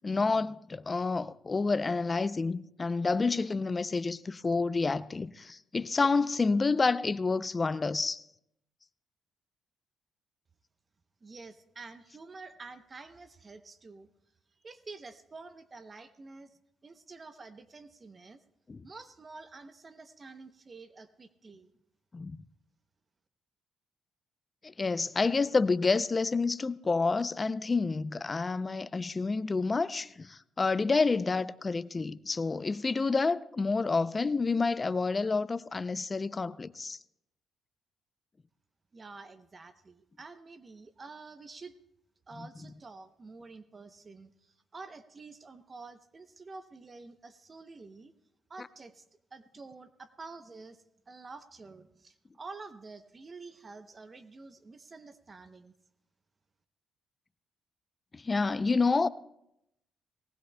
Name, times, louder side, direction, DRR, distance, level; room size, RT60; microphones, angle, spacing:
voice 1, 0.0-8.2 18.7-18.9 22.1-22.4 24.6-37.0 58.1-59.1, left 4 dB, 30° left, 0.4 m, -29 dB
voice 2, 11.2-14.1 14.6-18.4 18.8-21.7 38.9-41.7 42.3-48.1 48.5-49.0 49.3-55.7, right 3 dB, 35° right, 0.7 m, -49 dB
19.0 x 18.5 x 2.2 m
cardioid pair, 90°, 0 cm